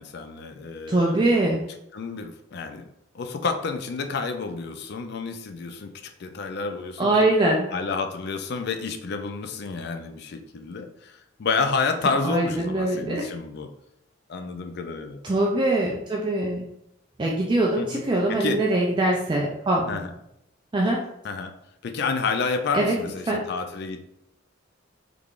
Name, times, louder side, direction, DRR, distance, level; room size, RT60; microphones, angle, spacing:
voice 1, 0.0-1.4 1.9-2.9 3.1-7.1 7.7-13.7 14.3-15.2 17.8-18.0 18.3-18.6 19.9-20.1 21.2-21.5 21.8-24.1, left 4 dB, 55° left, 7 dB, 0.4 m, -30 dB
voice 2, 0.9-1.6 7.0-7.7 12.2-13.2 15.2-16.6 17.2-20.0 20.7-21.0 22.7-22.9 23.3-23.5, right 1 dB, 25° right, -1 dB, 0.3 m, -23 dB
3.6 x 3.3 x 2.4 m, 0.81 s
head